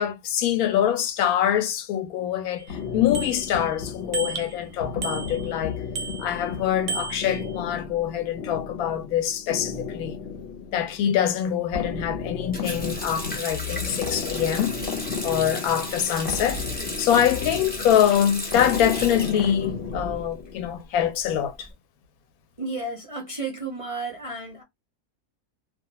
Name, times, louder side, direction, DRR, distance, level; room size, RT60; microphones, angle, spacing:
voice 1, 0.0-5.8 6.2-10.1 10.7-14.8 15.2-16.6 17.0-21.7, left 10 dB, 80° left, 1.0 m, -24 dB
Bicycle bell, 2.6-2.7 3.1-3.7 4.1-4.6 5.0-5.6 5.9-6.5 6.9-7.6, right 4 dB, 65° right, 0.8 m, -34 dB
sound 1, 2.7-20.8, left 5 dB, 50° left, 0.8 m, -34 dB
Water tap faucet, 12.5-20.3 20.6-21.6, left 1 dB, 10° left, 0.5 m, -35 dB
voice 2, 22.6-24.6, right 3 dB, 45° right, 0.4 m, -32 dB
2.4 x 2.2 x 2.8 m
omnidirectional pair, 1.5 m